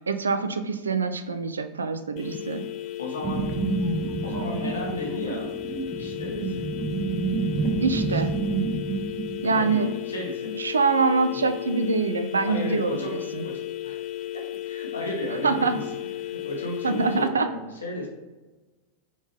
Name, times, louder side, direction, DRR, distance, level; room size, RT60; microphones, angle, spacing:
voice 1, 0.1-2.6 7.8-8.3 9.4-9.9 10.5-13.5 15.4-15.8 16.8-17.5, right 4 dB, 75° right, 10 dB, 0.4 m, -25 dB
sound 1, 2.2-17.3, left 13 dB, 40° left, 0.5 m, -35 dB
voice 2, 3.0-3.5 4.2-5.5 5.9-6.7 8.0-8.2 9.4-10.6 11.3-11.4 12.5-14.0 14.3-15.8 16.2-18.1, left 1 dB, 70° left, -1 dB, 1.2 m, -34 dB
sound 2, 3.2-10.0, right 4 dB, 20° right, 0.7 m, -29 dB
4.0 x 3.8 x 3.5 m, 1.2 s
figure-of-eight pair, 90°, 0 cm